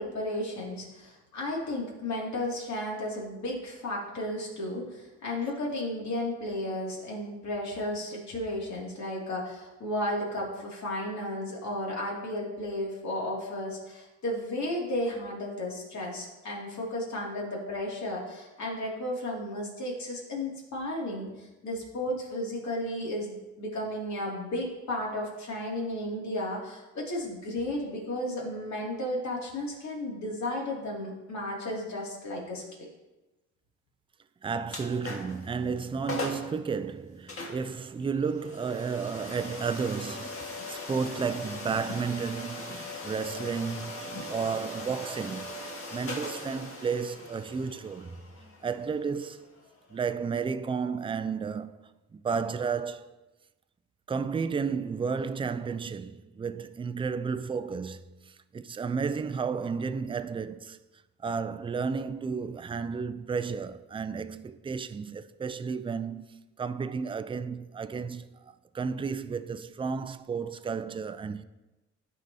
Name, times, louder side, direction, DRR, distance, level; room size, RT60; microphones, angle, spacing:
voice 1, 0.0-32.9, left 1 dB, 65° left, 2.4 m, -34 dB
voice 2, 34.4-45.5 45.9-48.2 48.6-49.5 49.9-53.1 54.1-60.8 61.2-71.4, right 5 dB, 20° right, 0.4 m, -32 dB
sound 1, 34.7-35.4 35.8-35.9 36.1-36.5 37.3-50.0, left 2 dB, 45° left, 1.7 m, -40 dB
13.5 x 4.9 x 2.7 m
cardioid pair, 90°, 30 cm